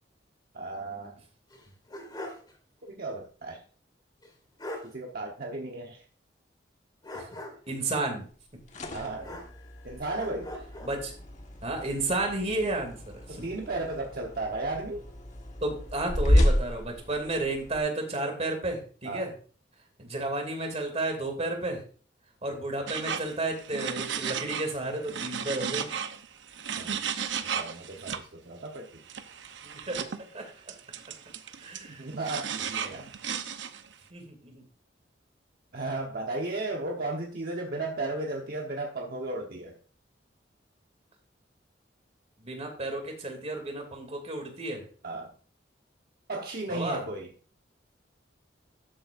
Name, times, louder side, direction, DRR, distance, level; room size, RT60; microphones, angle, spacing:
voice 1, 0.5-1.2 2.8-3.6 4.8-6.0 8.9-9.4 9.8-10.5 13.3-15.0 19.0-19.3 26.6-27.0 27.2-29.0 31.9-33.1 35.7-39.8 45.0-45.3 46.3-47.3, right 2 dB, 55° right, 1 dB, 1.1 m, -35 dB
sound 1, 1.5-2.5 2.8-2.9 4.2-4.3 4.6-4.9 7.0-7.8 9.2-9.8 10.2-11.0, left 1 dB, 25° left, 2.6 m, -41 dB
voice 2, 7.7-8.3 10.8-11.1 11.6-13.4 15.6-19.3 20.0-21.8 22.4-25.9 29.6-30.1 30.3-30.5 31.6-32.0 32.9-33.1 34.1-34.6 42.4-44.9 46.7-47.0, right 2 dB, 35° right, 4 dB, 2.6 m, -32 dB
sound 2, 8.4-17.8, left 1 dB, 40° left, 1.4 m, -31 dB
sound 3, 22.9-24.7 25.0-28.2 29.1-30.2 30.7-33.9, right 7 dB, 85° right, 0.8 m, -35 dB
12.5 x 7.8 x 2.5 m, 0.42 s
head